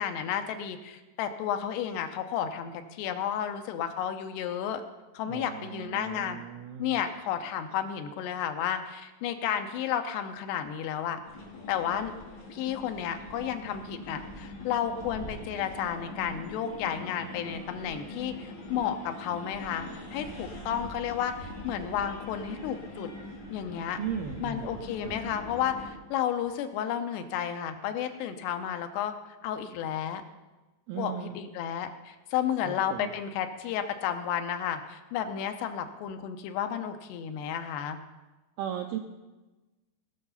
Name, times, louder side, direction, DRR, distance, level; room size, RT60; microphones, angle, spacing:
voice 1, 0.0-4.8 5.1-6.4 6.8-11.2 11.7-12.1 12.5-23.1 23.5-24.0 24.4-29.1 29.4-30.2 31.0-38.0, left 9 dB, 80° left, 7 dB, 2.8 m, -32 dB
voice 2, 5.2-7.0 24.0-25.2 30.9-31.4 32.6-33.1 38.6-39.0, right 9 dB, 85° right, 4 dB, 2.1 m, -37 dB
sound 1, 11.2-25.9, left 2 dB, 35° left, 2.3 m, -43 dB
19.0 x 6.6 x 5.6 m, 1.1 s
omnidirectional pair, 5.0 m